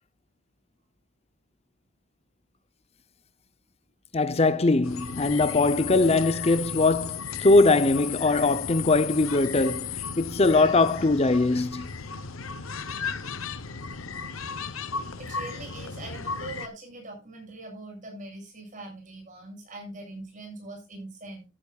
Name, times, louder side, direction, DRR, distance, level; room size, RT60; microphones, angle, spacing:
voice 1, 4.1-11.9, left 3 dB, 30° left, 0.7 m, -21 dB
sound 1, 4.8-16.7, left 6 dB, 85° left, 0.9 m, -35 dB
voice 2, 15.2-21.5, right 2 dB, 40° right, 7.0 m, -42 dB
14.0 x 11.5 x 2.4 m
head